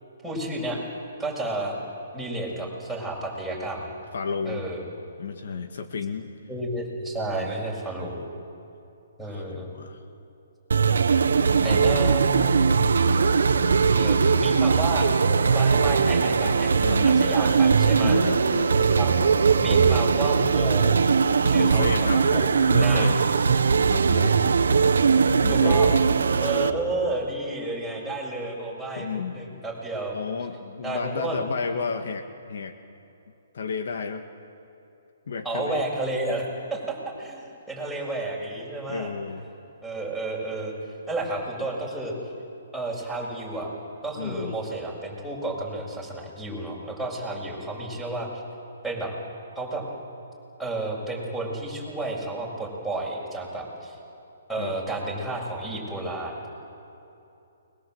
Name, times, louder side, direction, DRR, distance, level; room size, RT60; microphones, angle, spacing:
voice 1, 0.2-0.8 1.2-1.8 2.1-3.9 4.5-4.8 6.5-8.2 9.2-9.7 11.6-12.7 14.0-15.1 15.5-18.2 18.8-19.1 19.6-21.0 21.4-22.5 22.7-23.1 25.5-26.0 26.4-29.1 29.3-30.2 30.8-31.4 35.4-36.4 36.7-39.1 39.8-40.7 41.1-42.1 42.7-43.7 44.0-48.3 48.8-49.1 49.6-49.8 50.6-54.0 54.5-56.5, right 2 dB, ahead, -5 dB, 7.0 m, -31 dB
voice 2, 4.1-4.6 5.2-6.3 7.2-7.5 8.0-8.3 9.3-10.0 11.3-12.1 16.8-17.3 17.8-19.0 21.5-22.4 22.7-23.2 23.7-24.4 25.4-25.8 26.4-26.5 29.0-29.4 30.1-32.8 33.5-34.2 35.3-35.8 38.9-39.4 44.2-44.6 54.6-54.7, left 5 dB, 65° left, 7 dB, 1.9 m, -32 dB
sound 1, 10.7-26.7, right 5 dB, 80° right, 1.4 m, -20 dB
29.5 x 22.5 x 8.0 m, 2.8 s
hypercardioid pair, 145°, 0 cm